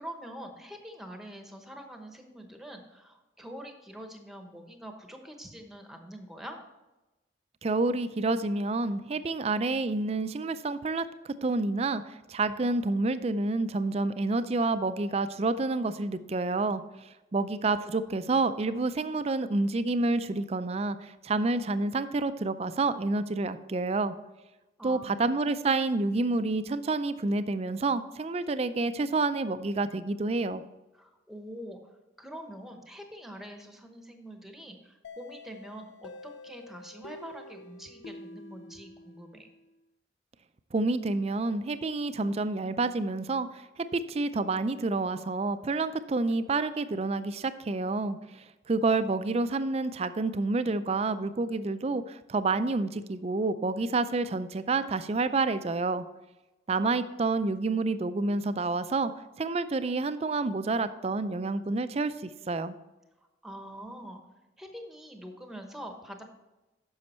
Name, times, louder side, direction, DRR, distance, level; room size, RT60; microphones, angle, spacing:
voice 1, 0.0-6.6 17.4-17.5 18.0-18.2 24.8-25.2 30.9-39.5 63.4-64.2 64.6-66.2, equal, ahead, 4 dB, 1.0 m, -45 dB
voice 2, 7.6-24.1 24.8-30.6 40.7-56.1 56.7-59.1 59.4-62.8, right 3 dB, 35° right, 12 dB, 0.4 m, -29 dB
sound 1, 35.0-39.7, left 2 dB, 80° left, 0.6 m, -48 dB
9.6 x 6.3 x 4.3 m, 1.0 s
head